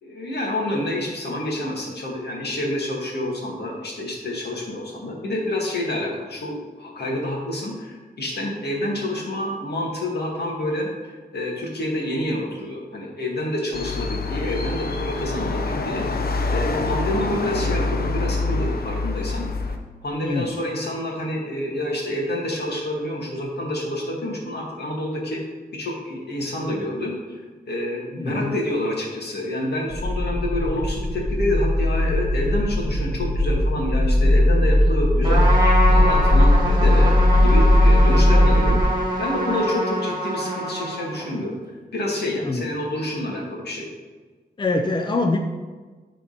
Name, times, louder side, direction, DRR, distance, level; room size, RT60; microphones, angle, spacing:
voice 1, 0.0-16.1 16.5-19.5 20.0-25.4 25.7-27.4 27.7-35.5 35.9-38.8 39.2-43.9, left 1 dB, 80° left, -2 dB, 2.2 m, -28 dB
sound 1, 13.7-19.8, left 3 dB, 65° left, 0.9 m, -26 dB
voice 2, 28.2-28.5 42.4-42.6 44.6-45.4, left 2 dB, 30° left, 4 dB, 0.6 m, -24 dB
sound 2, 29.9-38.8, left 1 dB, 45° left, 1.8 m, -18 dB
Trumpet, 35.2-41.4, right 1 dB, 25° right, 1.9 m, -25 dB
13.0 x 4.5 x 4.3 m, 1.4 s
wide cardioid pair, 145°, 17 cm